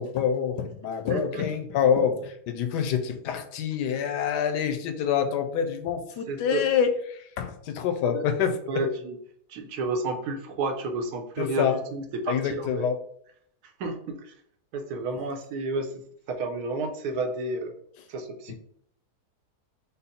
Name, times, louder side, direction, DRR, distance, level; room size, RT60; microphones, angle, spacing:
voice 1, 0.0-8.8 11.4-11.8 12.3-13.0 18.5-18.6, left 7 dB, 90° left, 8 dB, 1.2 m, -26 dB
voice 2, 1.1-1.5 6.3-6.6 8.1-8.2 8.7-9.2 9.5-12.9 13.8-14.3 14.7-16.0 16.3-17.7 18.1-18.5, right 2 dB, 75° right, 6 dB, 1.2 m, -31 dB
5.2 x 2.0 x 4.2 m, 0.67 s
omnidirectional pair, 1.7 m